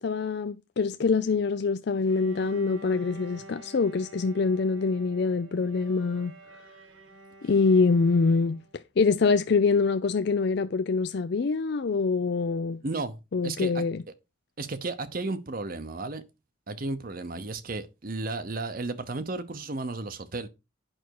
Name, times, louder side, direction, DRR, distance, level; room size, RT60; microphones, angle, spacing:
voice 1, 0.0-6.3 7.4-8.6 9.0-12.8 13.3-14.0, left 4 dB, 55° left, 0.4 m, -25 dB
Bowed string instrument, 2.1-8.8, right 1 dB, 85° right, 2.0 m, -48 dB
voice 2, 12.8-13.2 13.4-13.8 14.6-16.2 16.7-20.5, right 3 dB, 45° right, 0.8 m, -33 dB
9.0 x 5.9 x 4.7 m
head